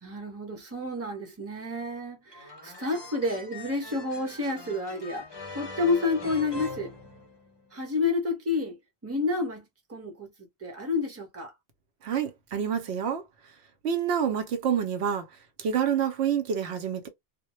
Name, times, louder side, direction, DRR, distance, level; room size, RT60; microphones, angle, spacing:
voice 1, 0.0-5.3 5.5-6.9 7.7-10.3 10.6-11.5, left 3 dB, 15° right, 0.8 m, -30 dB
sound 1, 2.3-7.7, left 3 dB, 30° left, 0.5 m, -42 dB
voice 2, 12.0-13.2 13.8-15.3 15.6-17.1, right 8 dB, 90° right, 0.9 m, -27 dB
2.1 x 2.1 x 2.9 m
omnidirectional pair, 1.1 m